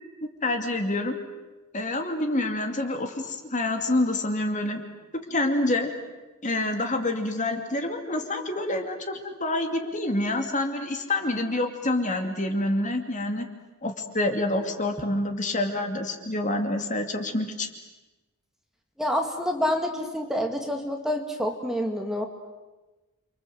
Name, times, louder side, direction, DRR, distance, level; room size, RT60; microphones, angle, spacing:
voice 1, 0.2-1.1 1.7-4.8 5.1-5.9 6.4-13.5 13.8-17.7, left 2 dB, 35° left, 5 dB, 2.6 m, -27 dB
voice 2, 19.0-22.3, equal, ahead, 3 dB, 2.2 m, -27 dB
29.5 x 25.0 x 7.9 m, 1.1 s
head